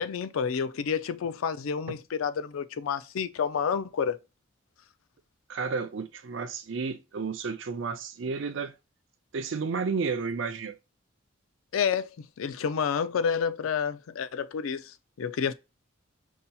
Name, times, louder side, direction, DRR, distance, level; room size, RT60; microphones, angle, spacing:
voice 1, 0.0-4.2 11.7-15.5, left 6 dB, 80° left, 0.4 m, -29 dB
voice 2, 5.5-8.7 9.3-10.8, right 5 dB, 65° right, 0.5 m, -32 dB
5.4 x 2.8 x 2.2 m
head